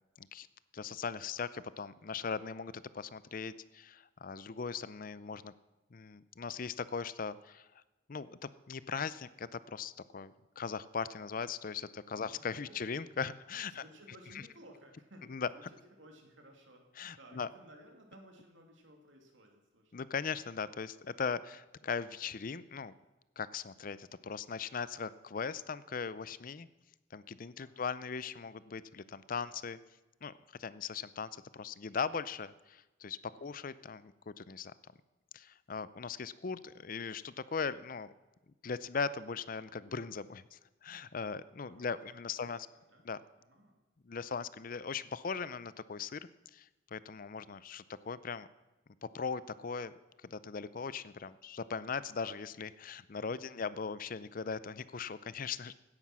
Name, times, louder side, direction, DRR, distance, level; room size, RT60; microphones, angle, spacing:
voice 1, 0.7-5.5 5.9-7.7 8.1-8.4 8.7-13.8 15.3-15.5 17.0-17.5 19.9-22.9 23.4-26.7 27.1-29.8 30.2-30.3 30.6-34.7 35.3-38.1 38.6-42.6 43.1-43.2 44.1-46.2 46.5-48.5 49.0-49.9 50.2-55.7, left 5 dB, 45° left, 16 dB, 0.5 m, -39 dB
voice 2, 12.1-13.1 13.7-16.8 17.2-19.9 27.6-27.8 29.4-29.6 33.3-33.6 41.6-43.1 43.4-43.8 53.3-53.6, right 1 dB, 85° right, 2 dB, 2.9 m, -58 dB
16.5 x 10.0 x 6.2 m, 1.1 s
head